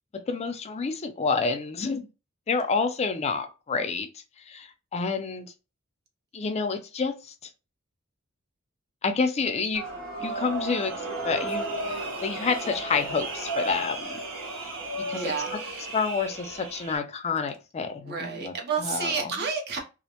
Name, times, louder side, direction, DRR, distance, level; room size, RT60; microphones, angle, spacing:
voice 1, 0.1-2.1 2.5-4.1 4.5-5.5 6.3-7.1 9.0-9.9 10.2-10.9 11.2-11.9 12.2-14.2 14.6-14.7 15.1-15.6 15.9-19.3, left 4 dB, 30° left, 0.4 m, -29 dB
sound 1, 9.7-17.0, right 2 dB, 70° right, 1.1 m, -34 dB
voice 2, 15.1-15.9 18.0-19.8, right 5 dB, 50° right, 0.6 m, -31 dB
2.4 x 2.1 x 2.8 m
head